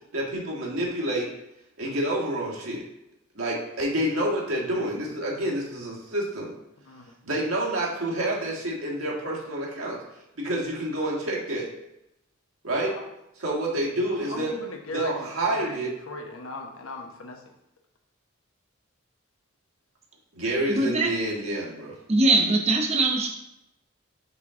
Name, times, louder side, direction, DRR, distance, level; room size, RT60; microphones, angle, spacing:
voice 1, 0.1-1.3 1.8-2.8 3.3-6.5 7.2-10.0 10.4-11.7 12.6-12.9 13.4-14.5 14.9-15.9 20.3-21.9, right 1 dB, 85° right, -3 dB, 1.7 m, -28 dB
voice 2, 14.1-15.3 15.5-17.4, left 2 dB, 85° left, 3 dB, 0.9 m, -39 dB
voice 3, 20.7-21.1 22.1-23.3, right 2 dB, 30° right, 2 dB, 0.8 m, -21 dB
5.9 x 4.6 x 3.7 m, 0.85 s
head